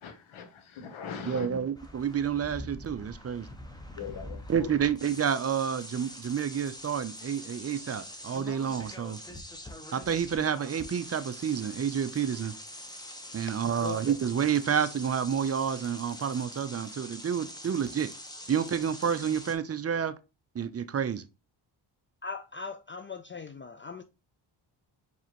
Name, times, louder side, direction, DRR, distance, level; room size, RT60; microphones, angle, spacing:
voice 1, 0.0-1.6 4.0-4.7, left 6 dB, 80° left, 1.1 m, -40 dB
voice 2, 1.2-3.5 4.5-9.2 9.9-12.5 13.3-18.1 18.5-20.1 20.5-21.2, right 8 dB, 30° right, 0.5 m, -29 dB
sound 1, 1.7-19.5, left 1 dB, 10° left, 1.0 m, -44 dB
voice 3, 22.2-24.0, left 4 dB, 25° left, 0.4 m, -39 dB
4.7 x 3.4 x 2.9 m
cardioid pair, 65°, 48 cm